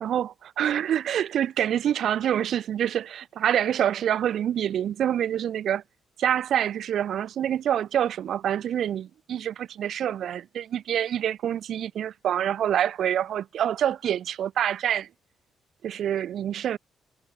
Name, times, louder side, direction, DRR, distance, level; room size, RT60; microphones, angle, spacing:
voice 1, 0.0-5.8 6.2-15.1 15.8-16.8, right 10 dB, 70° right, 0.8 m, -26 dB
cardioid pair, 90°, 0 cm